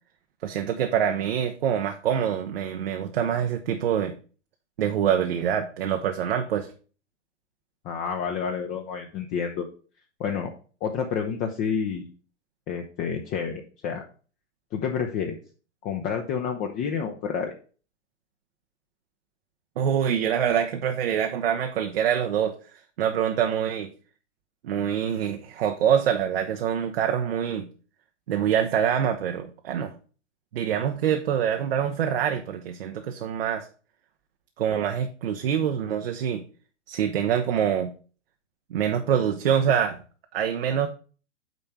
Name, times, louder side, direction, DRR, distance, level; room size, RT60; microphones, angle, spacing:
voice 1, 0.4-4.1 4.8-6.7 19.8-22.6 23.0-23.9 24.6-27.7 28.3-29.9 30.5-33.7 34.6-36.4 36.9-37.9 38.7-40.0 40.3-40.9, right 8 dB, 55° right, 5 dB, 0.9 m, -25 dB
voice 2, 7.8-9.6 10.2-10.5 10.8-12.1 12.7-14.0 14.7-15.4 15.8-17.5, left 6 dB, 25° left, 3 dB, 0.8 m, -29 dB
9.1 x 3.4 x 5.7 m, 0.39 s
figure-of-eight pair, 110°, 36 cm